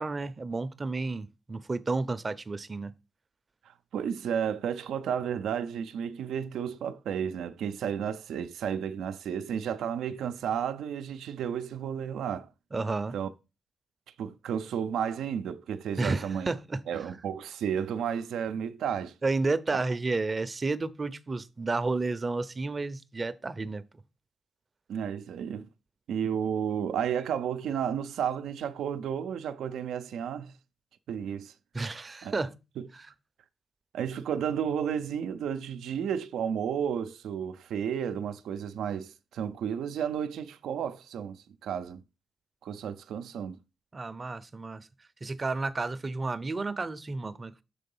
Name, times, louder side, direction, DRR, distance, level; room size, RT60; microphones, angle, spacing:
voice 1, 0.0-2.9 12.7-13.1 16.0-16.8 19.2-23.8 31.7-32.5 32.9-33.1 43.9-44.9 45.2-47.6, right 3 dB, 35° right, 0.6 m, -31 dB
voice 2, 3.9-12.5 13.1-13.3 14.2-16.5 16.9-19.1 24.9-25.7 26.1-30.5 31.1-31.5 32.2-32.3 32.8-32.9 33.9-42.0 42.6-43.6, right 8 dB, 90° right, 0.5 m, -32 dB
6.8 x 3.8 x 5.4 m
cardioid pair, 70°, 0 cm